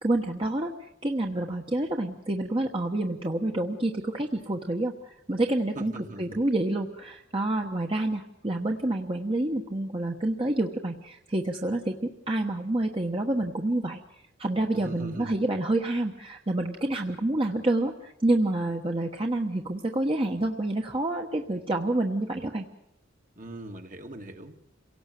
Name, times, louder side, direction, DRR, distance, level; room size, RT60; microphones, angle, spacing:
voice 1, 0.0-5.9 6.2-14.0 14.4-22.7, right 1 dB, 30° right, 2 dB, 1.2 m, -28 dB
voice 2, 5.8-6.4 14.7-15.3 23.4-24.8, right 1 dB, 45° right, 4 dB, 1.9 m, -41 dB
28.0 x 18.0 x 7.7 m, 0.82 s
head